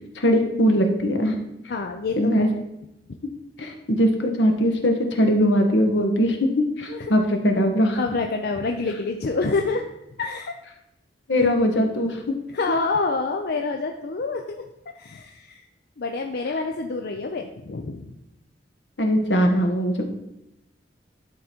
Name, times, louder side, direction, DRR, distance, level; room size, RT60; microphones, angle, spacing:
voice 1, 0.1-1.4 2.2-2.5 3.6-8.0 11.3-12.2 19.0-20.1, equal, 80° left, 4 dB, 1.2 m, -21 dB
voice 2, 1.7-2.5 3.1-3.2 6.9-7.1 8.0-9.8 10.2-10.5 11.3-11.4 12.5-14.6 14.9-15.7 16.0-18.1, left 3 dB, 60° left, 4 dB, 0.5 m, -27 dB
11.0 x 3.8 x 4.4 m, 0.88 s
head